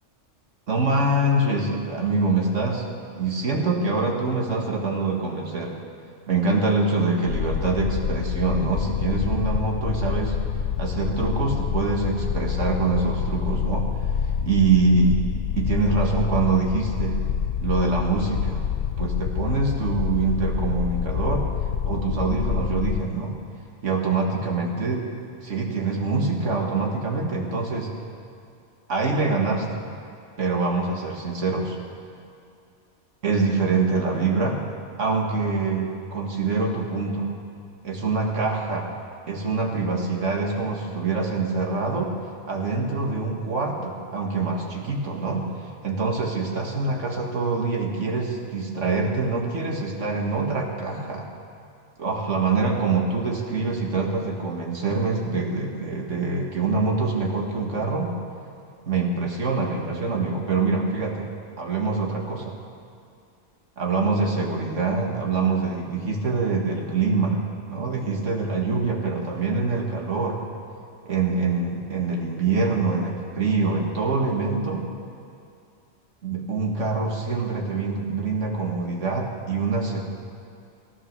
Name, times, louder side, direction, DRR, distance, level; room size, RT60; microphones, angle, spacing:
voice 1, 0.7-2.9 3.2-5.7 6.3-10.3 10.8-13.9 14.4-15.2 15.6-17.2 17.6-18.6 19.0-21.5 21.9-23.4 23.8-25.0 25.4-27.9 28.9-29.8 30.4-31.8 33.2-34.6 35.0-37.3 37.8-38.9 39.3-42.2 42.4-51.3 52.0-58.1 58.9-61.3 61.6-62.5 63.8-67.4 67.7-70.4 71.1-74.9 76.2-80.0, right 3 dB, 85° right, 0 dB, 2.2 m, -25 dB
sound 1, 7.3-23.0, left 8 dB, 60° left, 0.7 m, -27 dB
15.5 x 11.5 x 6.8 m, 2.5 s
omnidirectional pair, 1.2 m